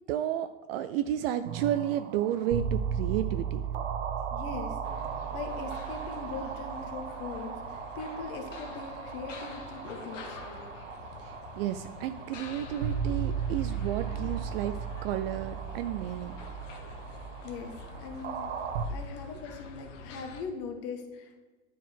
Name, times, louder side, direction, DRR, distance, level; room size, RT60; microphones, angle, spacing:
voice 1, 0.1-3.6 11.2-16.3, right 11 dB, 55° right, 10 dB, 0.4 m, -32 dB
sound 1, 1.4-18.9, right 7 dB, 70° right, 1.0 m, -36 dB
voice 2, 4.3-4.8 5.3-10.7 17.4-18.5 18.9-21.4, left 5 dB, 40° left, 4 dB, 1.3 m, -41 dB
sound 2, 4.8-20.4, left 5 dB, 90° left, 1.1 m, -46 dB
9.9 x 4.6 x 4.5 m, 1.3 s
supercardioid pair, 130°, 36 cm